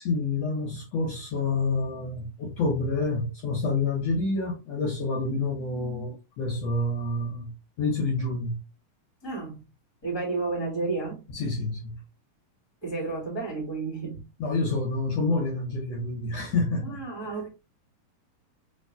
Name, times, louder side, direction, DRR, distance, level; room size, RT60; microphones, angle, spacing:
voice 1, 0.0-7.5 7.8-8.6 11.3-12.0 14.4-17.0, left 3 dB, 60° left, 2.1 m, -28 dB
voice 2, 9.2-9.6 10.0-11.2 12.8-14.3 16.8-17.5, right 3 dB, 10° left, 1.9 m, -32 dB
6.4 x 3.2 x 2.3 m
omnidirectional pair, 3.7 m